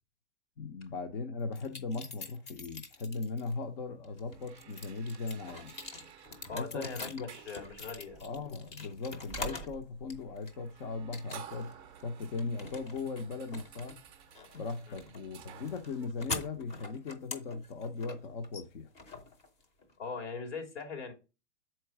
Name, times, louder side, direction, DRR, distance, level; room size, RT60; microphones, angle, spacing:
voice 1, 0.6-5.7 6.5-7.3 8.2-11.7 12.0-14.0 14.5-18.9, left 4 dB, 50° left, 0.9 m, -38 dB
sound 1, 1.5-3.5 4.0-9.8 10.1-10.7 11.1-11.7 12.0-19.9, left 3 dB, 20° left, 0.8 m, -44 dB
sound 2, 4.1-16.1, right 10 dB, 15° right, 0.5 m, -52 dB
voice 2, 6.5-8.2 14.9-15.0 20.0-21.1, left 4 dB, 85° left, 3.4 m, -41 dB
6.8 x 4.6 x 4.6 m
hypercardioid pair, 155°, 35 cm